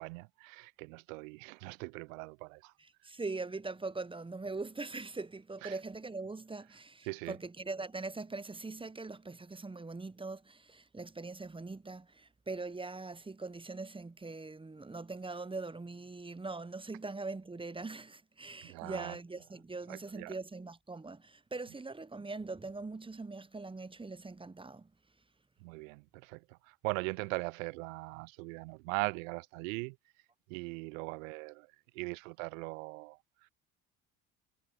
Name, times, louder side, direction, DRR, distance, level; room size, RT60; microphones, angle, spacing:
voice 1, 0.0-2.7 5.6-5.8 7.1-7.4 18.6-19.2 19.9-20.3 25.6-30.0 30.5-31.7 31.9-33.5, right 28 dB, 70° right, 0.5 m, -40 dB
voice 2, 2.8-24.9, right 3 dB, 10° right, 1.1 m, -42 dB
hypercardioid pair, 60°, 41 cm